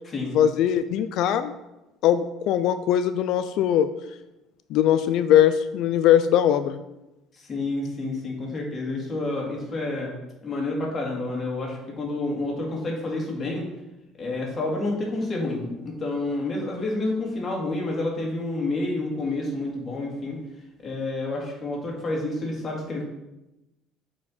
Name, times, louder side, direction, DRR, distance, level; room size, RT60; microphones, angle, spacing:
voice 1, 0.3-1.5 2.0-3.9 4.7-6.8, left 10 dB, 65° left, 12 dB, 0.4 m, -20 dB
voice 2, 7.5-10.1 10.4-13.7 14.2-20.4 20.8-23.0, left 2 dB, 30° left, -2 dB, 2.1 m, -29 dB
8.3 x 4.4 x 4.3 m, 0.97 s
cardioid pair, 130°, 0 cm